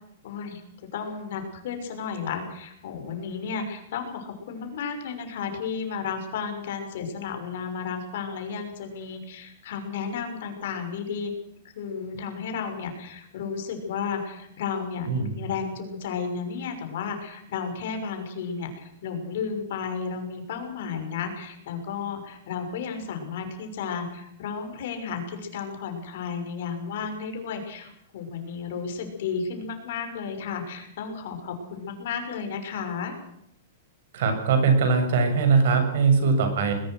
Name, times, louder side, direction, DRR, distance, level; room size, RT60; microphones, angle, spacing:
voice 1, 0.2-11.3 11.7-33.2, left 6 dB, 55° left, 5 dB, 6.3 m, -33 dB
voice 2, 34.1-36.7, right 4 dB, 55° right, 6 dB, 7.3 m, -21 dB
21.5 x 20.5 x 6.5 m, 0.79 s
supercardioid pair, 170°, 0 cm